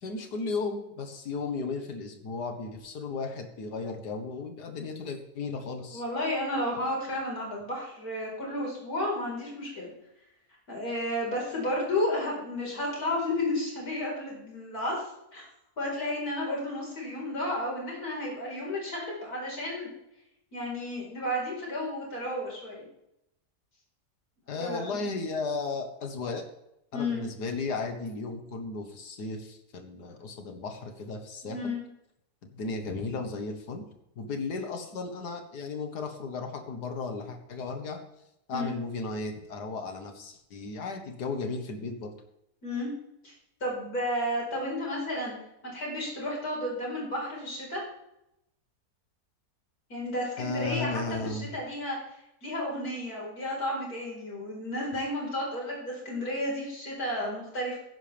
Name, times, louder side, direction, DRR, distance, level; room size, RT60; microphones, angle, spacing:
voice 1, 0.0-6.0 24.5-26.4 26.9-31.7 32.5-33.8 34.2-38.0 38.5-42.1 50.4-51.5, left 4 dB, 85° left, 5 dB, 2.0 m, -35 dB
voice 2, 5.9-9.9 10.7-15.5 15.8-19.9 20.5-22.9 24.6-25.0 26.9-27.2 31.4-31.8 38.5-38.7 42.6-42.9 43.2-43.3 43.6-45.4 45.6-47.8 49.9-57.8, left 1 dB, 65° left, -3 dB, 5.1 m, -32 dB
15.5 x 10.5 x 3.5 m, 0.83 s
omnidirectional pair, 1.7 m